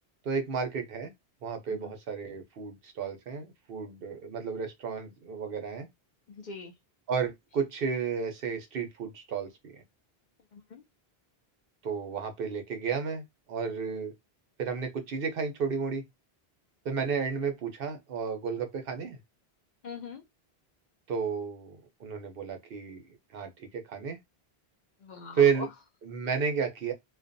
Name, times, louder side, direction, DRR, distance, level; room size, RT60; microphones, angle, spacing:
voice 1, 0.2-1.1 1.4-5.9 7.1-9.8 11.8-14.1 14.6-16.0 16.8-19.2 21.1-23.0 23.3-24.2 25.4-25.7 26.0-26.9, right 6 dB, 65° right, 0.8 m, -32 dB
voice 2, 6.3-6.7 10.5-10.8 19.8-20.2 25.0-25.7, left 4 dB, 60° left, 0.6 m, -42 dB
2.4 x 2.2 x 2.5 m
omnidirectional pair, 1.1 m